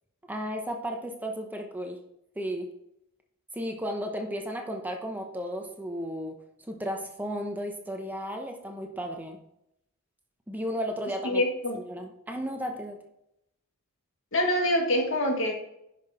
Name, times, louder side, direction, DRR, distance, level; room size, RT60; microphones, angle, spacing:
voice 1, 0.3-2.0 2.4-2.7 3.5-6.3 6.7-9.4 10.5-11.4 11.7-13.0, equal, 10° right, 3 dB, 0.9 m, -34 dB
voice 2, 11.2-11.8 14.3-15.5, left 1 dB, 60° left, 2 dB, 1.9 m, -25 dB
10.5 x 6.0 x 4.2 m, 0.81 s
head